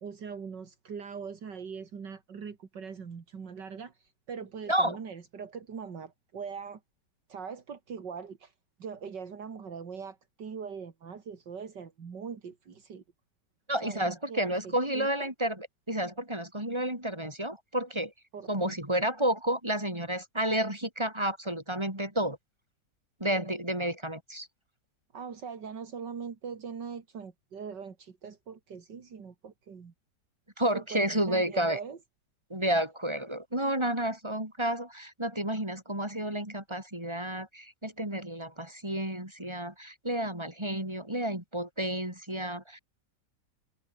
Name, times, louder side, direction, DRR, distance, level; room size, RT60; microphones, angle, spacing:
voice 1, 0.0-6.8 7.3-8.5 8.8-13.0 13.8-15.3 18.3-18.8 25.1-29.9 30.7-32.0, right 6 dB, 75° right, 2.9 m, -41 dB
voice 2, 13.7-18.1 18.5-22.4 23.2-24.5 30.6-31.8 32.5-42.8, right 1 dB, 15° right, 4.7 m, -31 dB
omnidirectional pair, 1.9 m